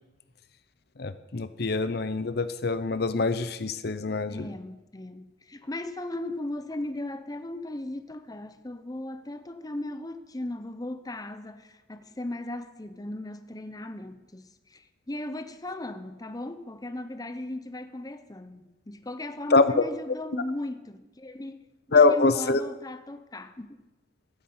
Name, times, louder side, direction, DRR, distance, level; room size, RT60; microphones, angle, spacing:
voice 1, 1.0-4.5 19.5-19.7 21.9-22.6, left 3 dB, 60° left, 0.7 m, -24 dB
voice 2, 4.3-21.6 22.0-23.8, left 1 dB, 20° left, 0.7 m, -37 dB
13.0 x 9.8 x 8.0 m
head